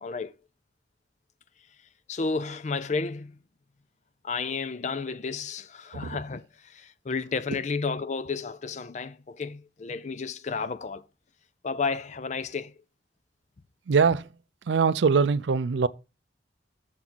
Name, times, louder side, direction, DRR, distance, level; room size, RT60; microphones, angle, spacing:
voice 1, 0.0-0.3 2.1-3.3 4.2-6.4 6.7-11.0 11.6-12.7, left 4 dB, 40° left, 0.4 m, -32 dB
voice 2, 13.9-14.3 14.7-15.9, right 5 dB, 80° right, 0.4 m, -23 dB
7.1 x 3.9 x 6.0 m
head